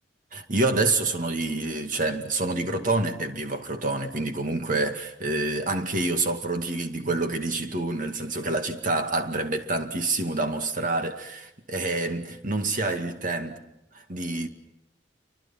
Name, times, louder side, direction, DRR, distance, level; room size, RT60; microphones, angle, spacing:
voice 1, 0.3-13.6 14.1-14.5, right 2 dB, 45° right, 2.2 m, -27 dB
29.0 x 25.0 x 5.7 m
head